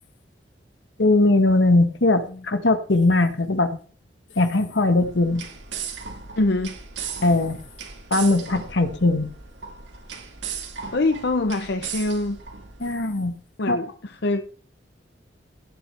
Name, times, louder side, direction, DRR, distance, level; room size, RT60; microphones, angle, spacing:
voice 1, 1.0-3.7 4.4-5.4 7.2-7.6 8.1-9.3 12.8-13.3 13.7-13.8, left 2 dB, 80° left, 9 dB, 1.4 m, -20 dB
sound 1, 4.9-13.1, right 6 dB, 80° right, 2.3 m, -37 dB
voice 2, 6.3-6.7 10.9-12.4 13.6-14.4, left 2 dB, 65° left, 8 dB, 0.8 m, -24 dB
17.0 x 8.3 x 3.4 m, 0.41 s
head